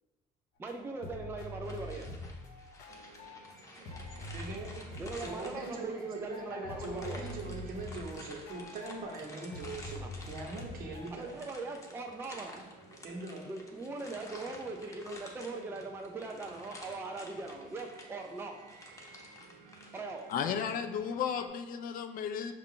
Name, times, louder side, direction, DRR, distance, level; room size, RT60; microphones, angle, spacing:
voice 1, 0.6-2.1 5.0-7.3 10.0-10.1 11.1-12.6 13.5-18.6 19.9-20.3, right 3 dB, 15° right, 2 dB, 0.3 m, -40 dB
sound 1, 0.7-0.8 1.0-3.6 3.9-9.2 9.5-11.1, left 1 dB, 80° left, 0.8 m, -45 dB
sound 2, 1.6-6.0 6.8-20.3, left 2 dB, 20° left, 0.7 m, -52 dB
sound 3, 2.9-21.5, right 5 dB, 80° right, 0.6 m, -57 dB
voice 2, 4.3-4.7 5.2-10.0 10.3-11.3 13.0-13.4, right 3 dB, 60° right, 0 dB, 1.0 m, -41 dB
voice 3, 20.3-22.5, left 7 dB, 55° left, 8 dB, 0.4 m, -34 dB
5.4 x 2.5 x 3.7 m, 1.2 s
cardioid pair, 110°, 17 cm